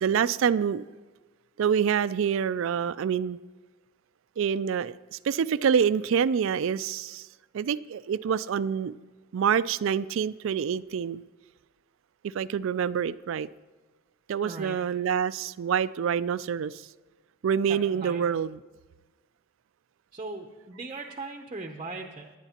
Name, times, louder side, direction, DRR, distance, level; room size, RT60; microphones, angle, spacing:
voice 1, 0.0-0.9 1.6-3.4 4.4-7.3 7.5-9.0 9.3-11.2 12.2-13.5 14.3-16.9 17.4-18.6, right 7 dB, 65° right, 18 dB, 0.3 m, -26 dB
voice 2, 14.4-14.8 17.7-18.2 20.1-22.3, right 3 dB, 25° right, 3 dB, 0.6 m, -39 dB
18.0 x 10.5 x 2.9 m, 1.3 s
head